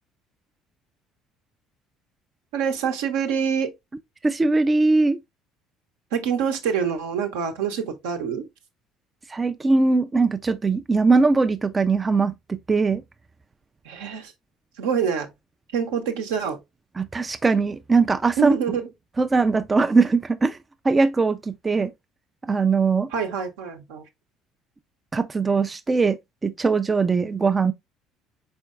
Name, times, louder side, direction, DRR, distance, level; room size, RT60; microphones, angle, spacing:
voice 1, 2.5-3.7 6.1-8.5 13.8-14.3 14.8-15.3 15.7-16.6 18.4-18.9 23.1-24.0, right 7 dB, 75° right, 0.8 m, -26 dB
voice 2, 4.2-5.2 9.3-13.0 17.0-18.5 19.2-20.6 20.8-21.9 22.5-23.1 25.1-27.7, right 4 dB, 25° right, 0.3 m, -21 dB
4.3 x 4.3 x 2.3 m
hypercardioid pair, 60°, 0 cm